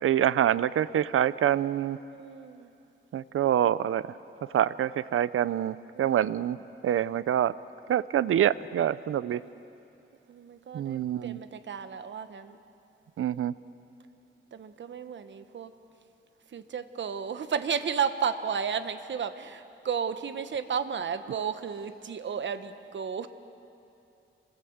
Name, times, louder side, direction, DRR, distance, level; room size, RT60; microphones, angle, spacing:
voice 1, 0.0-2.0 3.1-4.1 4.5-6.6 6.8-7.5 7.9-9.4 10.7-11.4 13.2-13.5, right 10 dB, 85° right, 17 dB, 0.6 m, -26 dB
voice 2, 2.1-2.7 5.9-6.4 9.3-9.5 10.3-12.6 14.5-15.7 16.5-23.3, right 7 dB, 60° right, 10 dB, 1.1 m, -33 dB
28.0 x 21.0 x 8.0 m, 2.7 s
wide cardioid pair, 135°, 21 cm